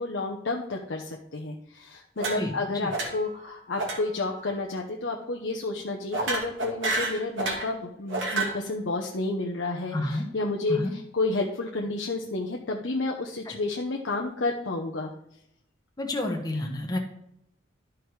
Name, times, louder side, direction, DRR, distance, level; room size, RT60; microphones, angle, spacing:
voice 1, 0.0-15.1, left 2 dB, 65° left, 1 dB, 0.9 m, -31 dB
sound 1, 2.2-2.6 2.9-3.3 3.8-4.0 4.3-4.6 6.1-7.7 8.1-8.6, right 2 dB, 70° right, 2.2 m, -30 dB
voice 2, 2.4-2.9 9.9-10.2 10.7-10.9 13.4-13.5 16.0-17.0, left 1 dB, 20° left, 1 dB, 1.1 m, -30 dB
12.0 x 4.9 x 4.7 m, 0.77 s
head